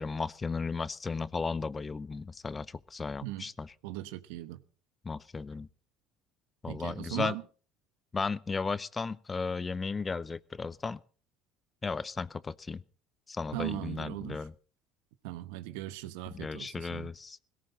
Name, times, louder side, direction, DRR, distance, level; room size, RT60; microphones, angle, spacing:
voice 1, 0.0-3.7 5.0-5.7 6.6-7.4 8.1-11.0 11.8-12.8 13.3-14.5 16.3-17.4, left 4 dB, 25° left, 0.6 m, -35 dB
voice 2, 3.8-4.6 6.7-7.4 13.5-14.4 15.2-17.1, right 16 dB, 75° right, 1.1 m, -38 dB
18.0 x 16.5 x 4.0 m
hypercardioid pair, 70°, 0 cm